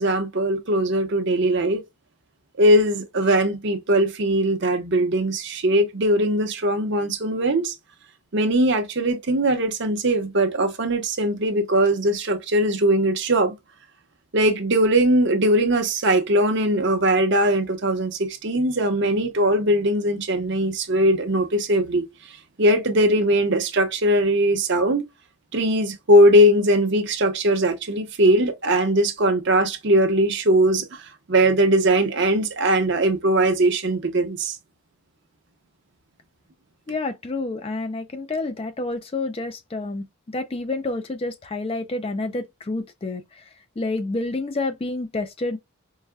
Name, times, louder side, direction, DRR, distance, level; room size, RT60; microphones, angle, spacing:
voice 1, 0.0-1.8 2.6-7.7 8.3-13.5 14.3-22.1 22.6-25.1 25.5-30.9 31.3-34.6, right 1 dB, 55° right, 0.7 m, -20 dB
voice 2, 36.9-43.5 43.8-45.6, left 2 dB, 25° left, 0.4 m, -29 dB
4.7 x 2.1 x 2.2 m
head